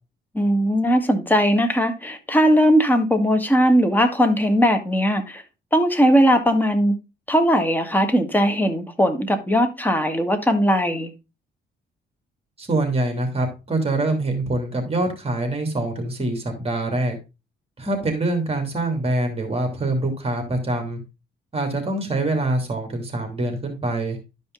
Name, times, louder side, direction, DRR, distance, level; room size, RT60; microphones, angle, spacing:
voice 1, 0.3-5.4 5.7-7.0 7.3-11.1, equal, 10° left, 1.9 m, -19 dB
voice 2, 12.6-17.2 17.8-21.0 21.5-24.2, right 2 dB, 30° right, 2.8 m, -24 dB
12.0 x 5.3 x 3.8 m
cardioid pair, 90°, 20 cm